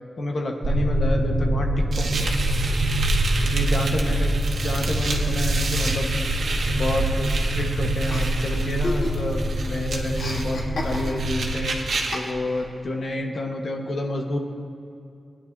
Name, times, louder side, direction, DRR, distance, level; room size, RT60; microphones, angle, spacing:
voice 1, 0.2-2.3 3.4-4.3 4.6-6.1 6.7-14.4, left 1 dB, 55° left, 2 dB, 1.2 m, -29 dB
sound 1, 0.6-11.8, right 1 dB, 65° right, 1.8 m, -24 dB
sound 2, 1.9-12.3, right 3 dB, 85° right, 1.2 m, -32 dB
Chuckle chortle, 8.1-9.5 9.7-11.4 12.1-12.7, left 2 dB, 90° left, 1.4 m, -33 dB
19.5 x 10.0 x 2.7 m, 2.6 s
wide cardioid pair, 145°, 0 cm